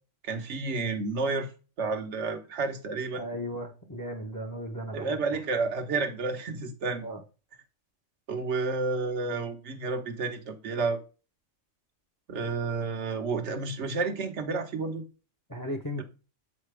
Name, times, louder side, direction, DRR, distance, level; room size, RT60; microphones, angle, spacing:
voice 1, 0.2-1.5 1.8-3.2 4.9-7.0 8.3-11.0 12.3-15.0 16.0-16.1, right 4 dB, 65° right, 1.3 m, -30 dB
voice 2, 3.1-5.4 7.0-7.2 15.5-16.0, equal, 20° left, 0.8 m, -36 dB
7.5 x 4.4 x 3.3 m
omnidirectional pair, 1.3 m